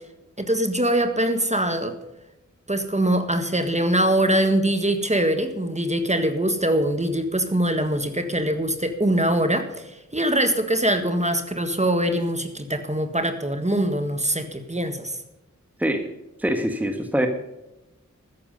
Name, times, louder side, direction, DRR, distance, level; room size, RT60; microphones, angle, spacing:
voice 1, 0.4-1.9 2.7-15.2, right 1 dB, 25° right, 8 dB, 1.6 m, -23 dB
voice 2, 16.4-17.3, right 1 dB, 5° right, 5 dB, 1.4 m, -24 dB
13.5 x 10.5 x 5.3 m, 0.97 s
wide cardioid pair, 65°, 30 cm